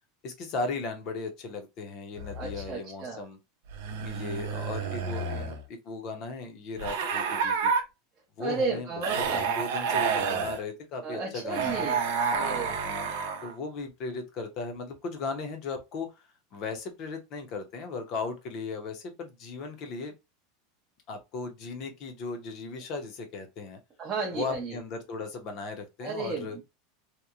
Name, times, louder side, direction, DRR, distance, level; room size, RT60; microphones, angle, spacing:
voice 1, 0.2-3.4 4.0-7.7 8.4-11.9 12.7-13.1 13.4-16.1 16.5-20.1 21.1-23.8 24.3-26.6, left 4 dB, 35° left, 0.6 m, -37 dB
sound 1, 2.2-2.7 3.7-5.6 6.8-7.8 9.0-10.6 11.5-13.5, right 5 dB, 60° right, 0.6 m, -29 dB
voice 2, 2.4-3.2 8.4-9.4 11.0-12.0 12.3-12.7 24.0-24.8 26.0-26.6, right 4 dB, 20° right, 0.5 m, -33 dB
2.8 x 2.1 x 2.3 m
supercardioid pair, 175°, 0 cm